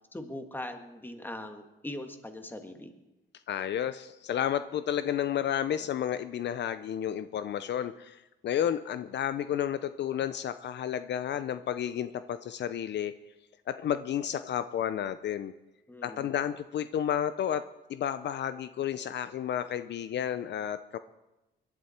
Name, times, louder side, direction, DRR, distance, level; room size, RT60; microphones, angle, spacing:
voice 1, 0.1-2.9 15.9-16.3, left 1 dB, 10° left, 6 dB, 1.9 m, -41 dB
voice 2, 3.5-13.2 13.7-15.5 16.0-21.0, left 10 dB, 60° left, 12 dB, 0.6 m, -31 dB
21.5 x 11.5 x 4.4 m, 1.0 s
cardioid pair, 90°, 20 cm